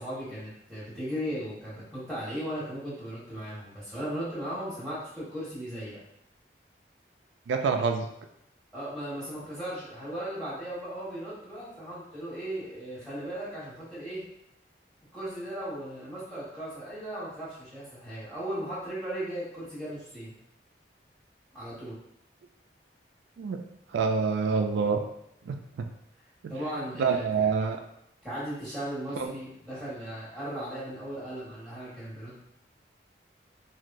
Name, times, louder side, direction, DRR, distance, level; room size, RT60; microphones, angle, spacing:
voice 1, 0.0-6.0 8.7-14.2 15.1-20.3 21.5-22.0 26.5-27.5 28.2-32.4, right 1 dB, 5° left, -11 dB, 1.4 m, -37 dB
voice 2, 7.5-8.1 23.4-23.6 23.9-25.0 25.5-25.9 27.0-27.8 29.2-29.3, right 5 dB, 85° right, 4 dB, 0.3 m, -26 dB
3.0 x 2.6 x 2.5 m, 0.80 s
head